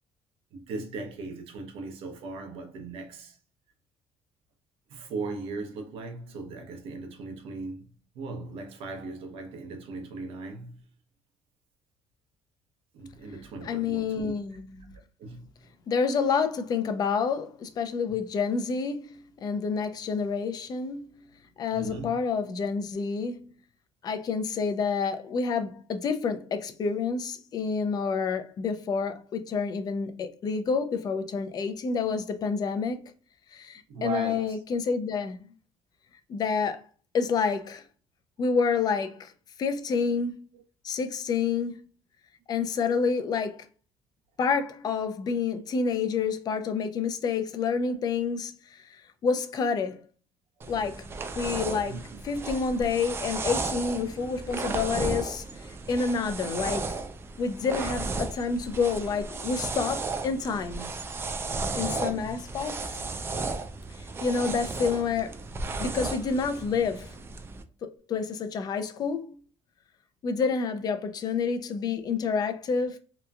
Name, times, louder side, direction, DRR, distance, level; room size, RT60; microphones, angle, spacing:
voice 1, 0.5-3.4 4.9-7.9 8.1-10.9 12.9-14.4 15.2-15.5 18.1-18.2 21.7-22.2 33.9-34.6 40.5-40.6 51.8-52.0 61.8-62.3, right 3 dB, 75° right, 0.8 m, -38 dB
voice 2, 13.6-15.0 15.9-21.1 21.6-23.4 24.0-33.1 33.5-35.4 36.3-36.8 37.1-37.8 38.4-39.3 39.6-40.4 40.8-41.8 42.5-43.7 44.4-48.5 49.2-50.0 50.7-51.1 51.4-52.0 52.2-55.4 55.9-57.0 57.4-60.9 61.7-63.0 64.2-65.4 65.8-67.1 67.8-69.4 70.2-73.0, left 5 dB, 45° left, 0.4 m, -28 dB
sound 1, 50.6-67.6, right 3 dB, 25° right, 0.3 m, -34 dB
2.9 x 2.3 x 2.3 m
cardioid pair, 130°, 10 cm